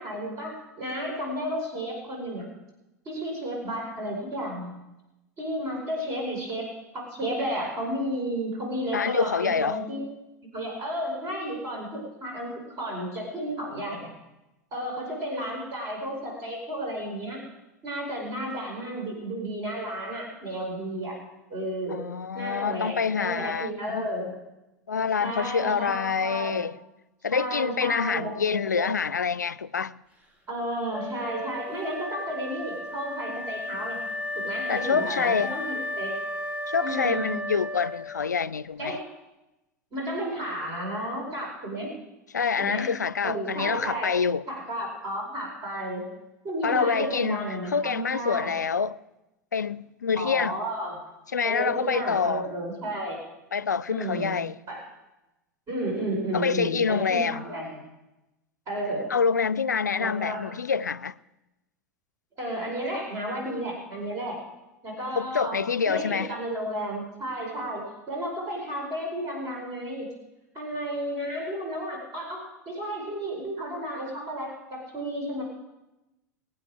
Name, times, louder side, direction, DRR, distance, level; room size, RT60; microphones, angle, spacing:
voice 1, 0.0-2.5 3.0-4.7 5.4-10.0 10.5-14.1 14.7-17.4 17.8-21.2 21.5-22.0 22.3-24.4 25.2-26.6 27.3-28.3 28.8-28.9 30.5-34.0 34.3-36.2 36.8-37.3 38.8-39.1 39.9-41.9 42.6-42.9 43.2-44.1 44.5-46.1 46.4-48.5 50.2-51.1 51.4-53.2 53.9-54.3 54.7-54.8 55.7-57.7 58.7-59.1 60.0-60.5 62.4-64.4 64.8-70.1 70.5-75.4, right 1 dB, 35° right, 5.1 m, -32 dB
voice 2, 8.9-9.8 21.9-24.1 24.9-26.8 27.2-30.0 34.7-35.5 36.7-39.0 42.3-44.4 46.6-49.0 49.5-50.6 51.3-52.5 53.5-54.6 56.3-57.4 59.1-61.1 65.2-66.3, left 6 dB, 80° left, 0.4 m, -26 dB
Wind instrument woodwind instrument, 30.9-38.5, left 1 dB, 15° right, 2.0 m, -34 dB
22.5 x 9.1 x 4.9 m
figure-of-eight pair, 85°, 9 cm